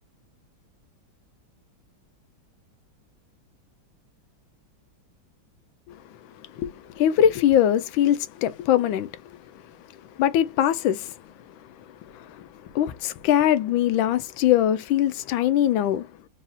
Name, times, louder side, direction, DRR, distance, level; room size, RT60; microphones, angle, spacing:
voice 1, 6.6-9.1 10.2-11.1 12.7-16.1, left 11 dB, 80° left, 1.3 m, -21 dB
4.1 x 2.3 x 4.0 m
omnidirectional pair, 2.2 m